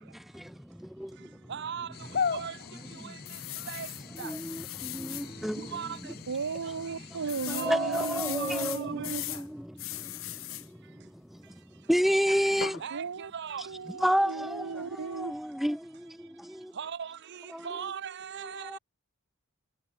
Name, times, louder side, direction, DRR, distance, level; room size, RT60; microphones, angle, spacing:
voice 1, 0.3-1.5 3.0-3.7 4.2-5.8 7.1-7.2 7.5-12.8 14.0-16.8 17.5-17.7 18.4-18.8, equal, ahead, 0.7 m, -32 dB
voice 2, 1.5-1.9 2.3-2.6 3.0-3.1 3.7-3.9 4.2-4.3 5.6-6.1 7.5-9.1 12.8-13.7 16.8-18.8, right 7 dB, 50° right, 0.6 m, -38 dB
sound 1, 1.9-8.1, left 6 dB, 45° left, 0.6 m, -39 dB
sound 2, 3.3-5.3 5.8-5.9 6.2-6.3 7.3-9.4 9.8-10.7 12.6-12.8, left 14 dB, 65° left, 0.9 m, -39 dB
voice 3, 6.3-9.2 12.9-13.3 13.7-15.3, right 5 dB, 85° right, 0.7 m, -36 dB
head